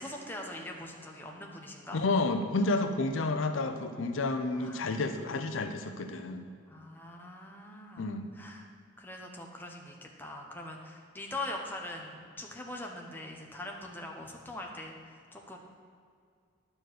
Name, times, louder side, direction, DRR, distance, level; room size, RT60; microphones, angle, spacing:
voice 1, 0.0-2.0 4.5-4.9 6.7-8.7 9.0-15.6, left 1 dB, 10° left, 1 dB, 0.8 m, -42 dB
voice 2, 1.9-6.5 8.0-8.3, left 3 dB, 70° left, 7 dB, 0.5 m, -30 dB
10.5 x 4.4 x 6.5 m, 2.2 s
head